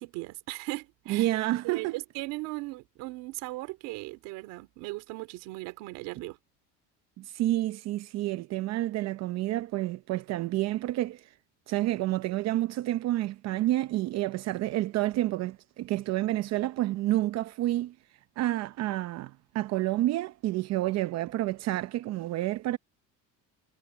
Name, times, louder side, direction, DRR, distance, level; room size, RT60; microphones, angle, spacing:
voice 1, 0.0-1.3 1.6-6.4, right 21 dB, 80° right, 3.1 m, -38 dB
voice 2, 1.1-1.9 7.2-11.3 11.7-17.9 18.4-22.8, right 15 dB, 55° right, 0.7 m, -29 dB
cardioid pair, 145°, 32 cm